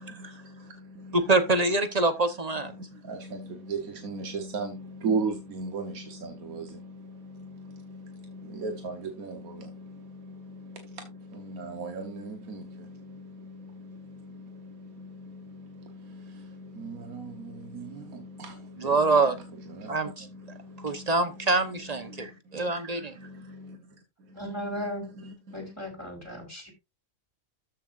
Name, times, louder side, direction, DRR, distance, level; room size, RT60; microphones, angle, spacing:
voice 1, 0.2-1.3 2.6-25.8, right 3 dB, 85° right, 1.6 m, -38 dB
voice 2, 1.1-2.7 18.8-19.4 19.9-20.3 20.8-23.2, right 3 dB, 30° right, 1.0 m, -25 dB
voice 3, 24.4-25.0 25.5-26.7, equal, 10° left, 3.7 m, -36 dB
13.5 x 6.5 x 2.5 m
omnidirectional pair, 1.4 m